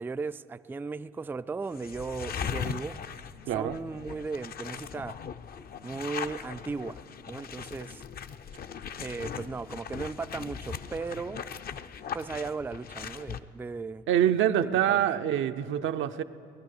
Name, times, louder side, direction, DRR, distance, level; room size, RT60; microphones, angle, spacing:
voice 1, 0.0-3.0 3.5-5.2 5.8-8.0 9.0-11.4 12.1-14.0 14.6-15.0, right 4 dB, 10° right, 11 dB, 0.3 m, -36 dB
sound 1, 1.7-13.4, left 7 dB, 50° left, 0.6 m, -39 dB
voice 2, 3.5-3.8 14.1-16.2, right 10 dB, 75° right, 8 dB, 0.6 m, -25 dB
19.0 x 11.5 x 6.6 m, 2.8 s
cardioid pair, 90°, 20 cm